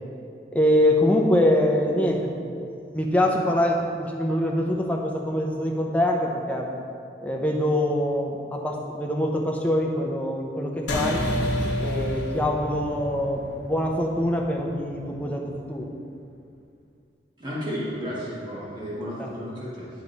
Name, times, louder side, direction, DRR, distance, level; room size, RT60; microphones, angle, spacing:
voice 1, 0.5-2.3 2.9-6.7 7.2-11.3 11.8-15.9 19.2-19.3, left 1 dB, 10° left, 0 dB, 0.6 m, -24 dB
sound 1, 10.9-15.7, left 1 dB, 80° left, 1.0 m, -30 dB
voice 2, 17.4-19.9, equal, 25° right, -7 dB, 1.6 m, -32 dB
10.5 x 3.6 x 4.0 m, 2.4 s
head